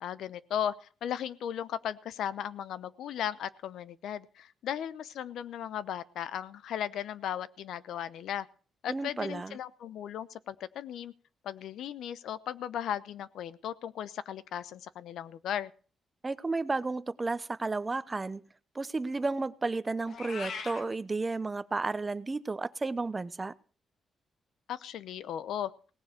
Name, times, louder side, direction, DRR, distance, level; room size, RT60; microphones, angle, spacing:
voice 1, 0.0-8.5 8.8-11.1 11.4-15.7 24.7-25.7, left 10 dB, 85° left, 16 dB, 0.8 m, -36 dB
voice 2, 8.9-9.6 16.2-18.4 18.7-23.5, right 3 dB, 25° right, 15 dB, 0.7 m, -32 dB
Meow, 20.1-20.8, left 5 dB, 65° left, 1.5 m, -39 dB
18.0 x 6.9 x 7.7 m, 0.40 s
cardioid pair, 115°, 0 cm